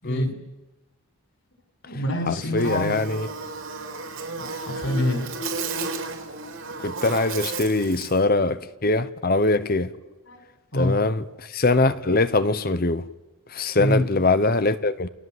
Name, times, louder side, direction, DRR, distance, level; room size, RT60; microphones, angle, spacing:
voice 1, 0.0-0.3 1.9-3.0 4.5-5.3 7.8-8.3 10.2-10.4 10.7-11.0 13.8-14.0, left 1 dB, 60° left, 6.1 m, -26 dB
voice 2, 2.3-3.3 6.8-9.9 10.7-11.2 11.5-13.0 13.5-15.1, left 2 dB, 40° left, 0.9 m, -22 dB
Buzz, 2.6-8.2, right 3 dB, 65° right, 4.1 m, -33 dB
29.0 x 21.5 x 8.0 m
head